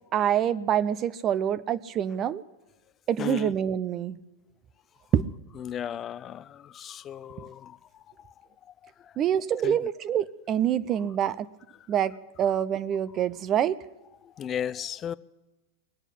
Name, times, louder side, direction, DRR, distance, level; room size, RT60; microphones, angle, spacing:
voice 1, 0.1-2.4 3.1-4.2 5.1-5.2 9.2-11.5 11.9-13.8, right 9 dB, 35° right, 0.6 m, -26 dB
voice 2, 3.2-3.5 5.6-7.8 9.6-9.8 14.4-15.1, left 9 dB, 30° left, 0.5 m, -34 dB
20.5 x 8.2 x 8.6 m
hypercardioid pair, 95°, 0 cm